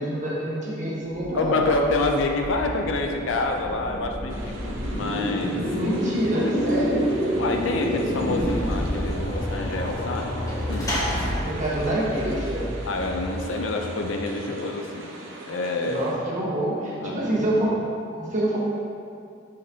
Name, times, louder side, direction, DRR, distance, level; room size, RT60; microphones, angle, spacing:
voice 1, 0.0-1.9 5.7-7.2 11.4-12.7 15.8-17.8 18.2-18.6, right 1 dB, 40° right, -6 dB, 1.3 m, -26 dB
sound 1, 1.1-14.3, equal, 40° left, 1.4 m, -29 dB
voice 2, 1.3-5.6 6.7-6.8 7.4-11.0 12.9-15.1 15.5-16.1 17.0-17.3, left 3 dB, 70° left, 3 dB, 0.5 m, -27 dB
sound 2, 4.3-16.1, right 2 dB, 75° right, 0.7 m, -41 dB
Sliding door / Slam, 7.6-13.0, equal, 20° left, 1.0 m, -33 dB
6.8 x 5.1 x 2.8 m, 2.4 s
head